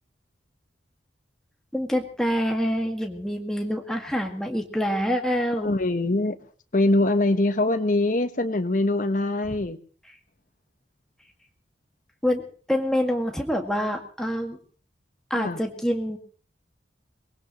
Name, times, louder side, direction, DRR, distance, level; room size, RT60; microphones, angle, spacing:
voice 1, 1.7-5.7 12.2-12.4 12.7-14.6 15.3-16.2, equal, 5° left, 2 dB, 2.0 m, -26 dB
voice 2, 5.6-6.4 6.7-9.8 15.3-15.6, left 2 dB, 45° left, 8 dB, 1.2 m, -23 dB
23.0 x 20.0 x 3.1 m, 0.41 s
head